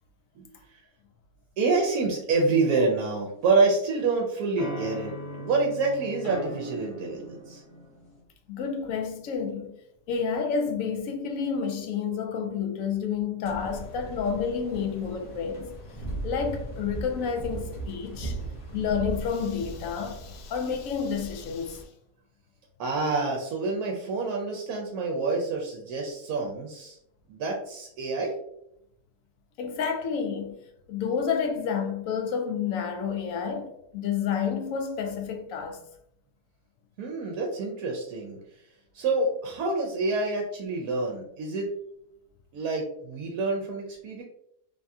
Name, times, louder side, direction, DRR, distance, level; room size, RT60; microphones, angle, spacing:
voice 1, 0.4-0.8 1.6-7.6 22.8-27.0 27.3-28.3 37.0-38.4 38.9-41.7 42.5-44.2, right 3 dB, 75° right, 1.0 m, -27 dB
sound 1, 3.0-3.9 4.6-8.2, equal, 35° left, 1.1 m, -39 dB
voice 2, 8.5-9.7 10.1-15.7 16.2-18.4 18.7-21.8 29.6-30.5 30.9-35.8, left 6 dB, 70° left, 0.8 m, -30 dB
sound 2, 13.4-21.8, right 2 dB, 50° left, 0.4 m, -38 dB
3.3 x 2.7 x 2.3 m
omnidirectional pair, 1.7 m